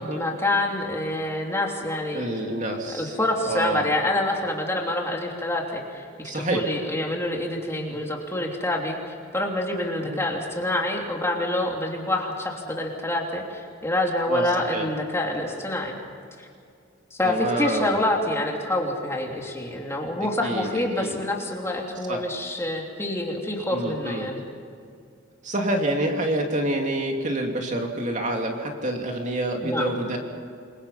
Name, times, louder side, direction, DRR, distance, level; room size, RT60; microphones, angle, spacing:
voice 1, 0.0-2.2 2.9-6.1 6.3-9.0 9.3-16.0 16.4-16.5 17.1-24.4 29.6-29.9, left 1 dB, 15° left, 0 dB, 3.0 m, -27 dB
voice 2, 2.1-3.1 3.5-3.9 6.2-6.6 7.9-8.0 10.0-10.2 14.3-14.9 17.2-18.0 20.4-21.2 22.1-22.2 23.7-24.3 25.4-30.2, right 1 dB, 35° right, 2 dB, 2.6 m, -27 dB
28.0 x 23.0 x 5.7 m, 2.4 s
head